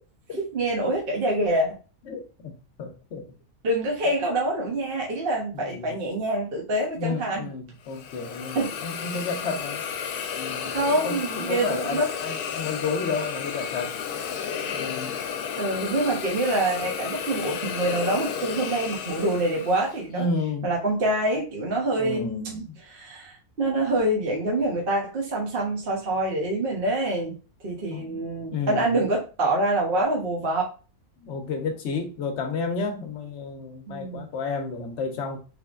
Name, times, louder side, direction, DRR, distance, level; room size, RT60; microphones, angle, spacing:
voice 1, 0.4-1.8 3.6-7.5 8.5-8.7 10.6-12.1 15.6-20.3 20.6-27.4 27.6-30.7 33.9-34.2, right 1 dB, 45° right, 0.8 m, -26 dB
voice 2, 2.1-3.3 5.5-5.9 7.0-9.8 10.4-10.7 11.0-13.9 14.7-15.1 20.1-20.7 22.0-22.7 27.9-28.2 28.5-29.0 31.2-35.4, left 4 dB, 60° left, 0.9 m, -31 dB
Hiss, 7.9-20.0, left 7 dB, 90° left, 1.1 m, -33 dB
3.4 x 3.3 x 2.4 m
omnidirectional pair, 1.6 m